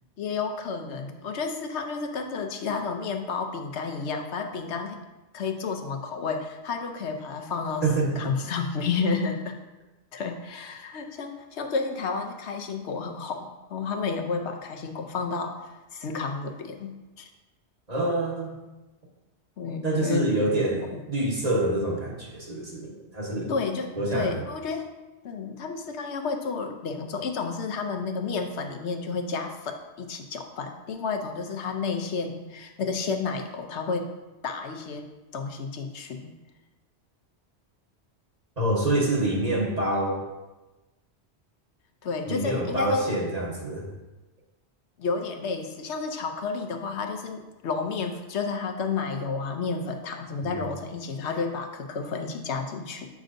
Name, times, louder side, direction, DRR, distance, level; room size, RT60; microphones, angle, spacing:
voice 1, 0.2-5.0 5.3-9.6 10.1-17.3 19.6-20.3 20.9-21.0 23.5-24.9 25.2-34.1 34.4-36.3 42.0-43.1 45.0-53.1, left 4 dB, 80° left, 4 dB, 1.0 m, -31 dB
voice 2, 7.8-8.3 17.9-18.5 19.8-23.5 24.0-24.4 38.6-40.2 42.3-43.9 50.4-50.5, right 1 dB, 35° right, -3 dB, 1.2 m, -26 dB
7.6 x 6.2 x 2.6 m, 1.1 s
omnidirectional pair, 1.1 m